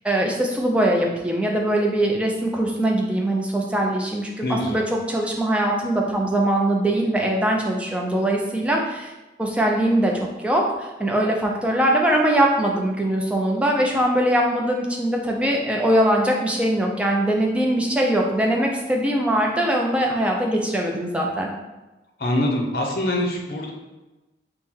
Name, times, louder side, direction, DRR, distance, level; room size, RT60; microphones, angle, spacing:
voice 1, 0.0-9.1 9.4-21.5, right 1 dB, 5° right, -1 dB, 0.5 m, -22 dB
voice 2, 4.4-4.8 22.2-23.7, left 1 dB, 55° left, 0 dB, 0.6 m, -24 dB
3.6 x 2.2 x 4.4 m, 1.1 s
head